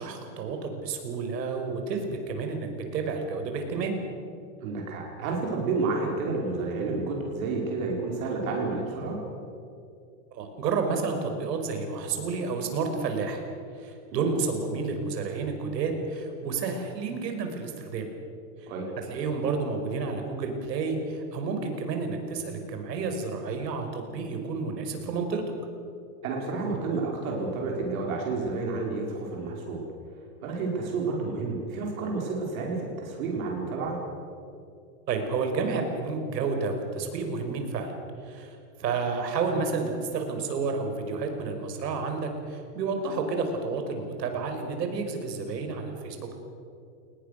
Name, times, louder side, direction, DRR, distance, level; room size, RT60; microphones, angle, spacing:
voice 1, 0.0-4.0 10.3-13.4 13.7-18.1 18.6-18.7 19.1-25.4 35.1-46.3, right 4 dB, 85° right, 5 dB, 5.5 m, -30 dB
voice 2, 4.6-9.2 18.7-18.9 26.2-29.8 30.4-34.0, right 3 dB, 55° right, -1 dB, 5.2 m, -30 dB
30.0 x 19.5 x 6.7 m, 2.6 s
supercardioid pair, 175°, 48 cm